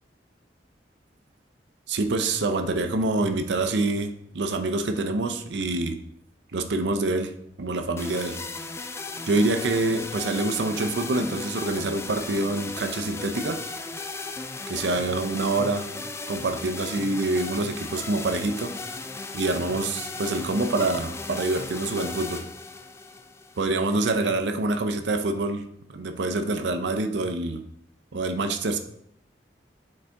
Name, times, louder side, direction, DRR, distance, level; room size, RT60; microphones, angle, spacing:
voice 1, 1.9-6.0 6.5-7.3 7.6-8.4 9.3-13.6 14.7-15.9 16.3-18.7 19.3-22.5 23.6-27.6 28.1-28.8, right 2 dB, 80° right, 0.6 m, -26 dB
sound 1, 8.0-24.0, left 3 dB, 15° left, 0.3 m, -36 dB
7.7 x 4.1 x 3.4 m
head